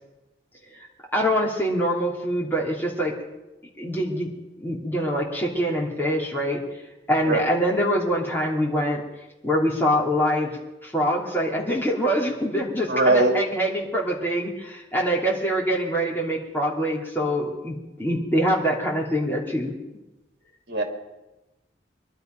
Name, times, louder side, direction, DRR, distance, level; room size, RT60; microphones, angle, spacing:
voice 1, 1.1-3.1 3.8-4.3 4.6-6.6 7.1-9.0 9.4-19.7, equal, 10° left, -3 dB, 3.0 m, -24 dB
voice 2, 12.9-13.3 20.7-20.8, right 3 dB, 70° right, 3 dB, 2.8 m, -20 dB
23.0 x 12.0 x 5.3 m, 1.0 s
head